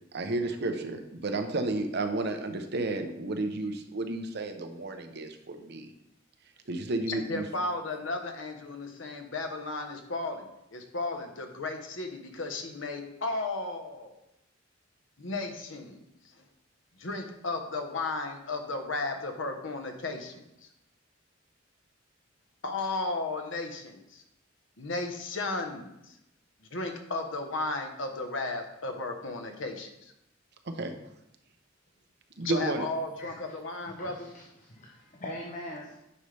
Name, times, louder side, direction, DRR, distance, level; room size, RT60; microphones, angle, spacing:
voice 1, 0.1-5.9 6.7-7.4 30.7-30.9 32.4-32.8, right 2 dB, 55° right, 6 dB, 0.7 m, -32 dB
voice 2, 7.1-14.1 15.2-16.0 16.4-16.5 17.0-20.5 22.6-24.2 24.8-26.2 26.7-30.1 32.4-34.3, left 2 dB, 75° left, 5 dB, 1.0 m, -34 dB
voice 3, 33.2-33.5 33.9-35.9, left 1 dB, 40° left, -1 dB, 0.9 m, -42 dB
9.6 x 5.4 x 3.3 m, 0.85 s
head